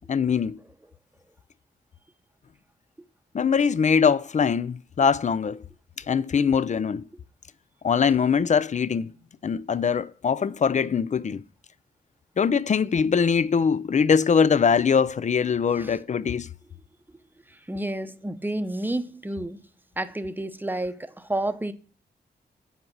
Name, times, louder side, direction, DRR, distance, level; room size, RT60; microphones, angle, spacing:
voice 1, 0.1-0.6 3.3-5.6 6.1-7.0 7.8-9.1 9.4-11.4 12.4-16.5, left 6 dB, 40° left, 0.5 m, -22 dB
voice 2, 17.5-19.6 20.0-21.7, right 1 dB, 10° right, 0.8 m, -30 dB
8.0 x 4.8 x 7.2 m
cardioid pair, 75°, 18 cm